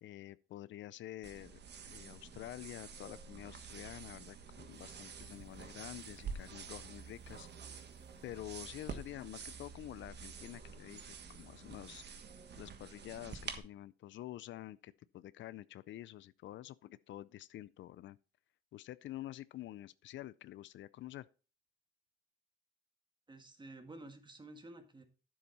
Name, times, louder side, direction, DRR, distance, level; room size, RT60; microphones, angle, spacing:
voice 1, 0.0-1.6 1.9-7.5 8.2-12.0 12.5-18.2 18.7-21.3, left 14 dB, 70° left, 0.4 m, -48 dB
sound 1, 1.2-13.6, right 6 dB, 60° right, 1.4 m, -48 dB
sound 2, 4.7-13.2, equal, 90° right, 3.7 m, -73 dB
voice 2, 23.3-25.0, right 2 dB, 25° right, 1.8 m, -52 dB
10.0 x 7.3 x 4.1 m
cardioid pair, 90°, 20 cm